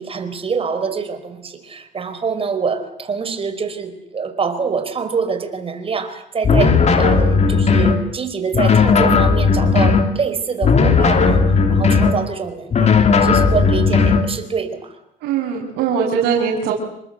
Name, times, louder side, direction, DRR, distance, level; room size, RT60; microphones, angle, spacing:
voice 1, 0.0-15.0, right 5 dB, 35° right, 9 dB, 4.7 m, -25 dB
sound 1, 6.4-8.0 8.5-10.1 10.6-12.2 12.7-14.3, left 5 dB, 40° left, 3.1 m, -15 dB
voice 2, 15.2-16.7, right 7 dB, 80° right, -4 dB, 6.3 m, -20 dB
28.0 x 23.0 x 8.0 m, 0.77 s
cardioid pair, 110°, 17 cm